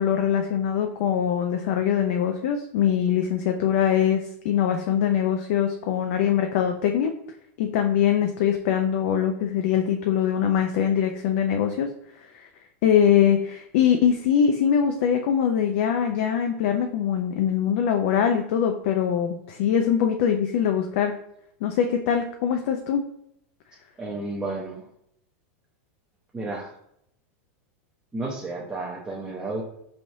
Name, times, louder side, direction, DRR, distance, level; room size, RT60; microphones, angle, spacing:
voice 1, 0.0-7.1 7.6-11.9 12.3-12.5 12.8-21.2 21.6-23.0, left 8 dB, 60° left, 4 dB, 0.4 m, -23 dB
voice 2, 24.0-24.8 26.3-26.7 28.1-29.6, right 2 dB, 10° right, -4 dB, 0.6 m, -32 dB
4.0 x 3.2 x 2.7 m, 0.73 s
supercardioid pair, 140°, 8 cm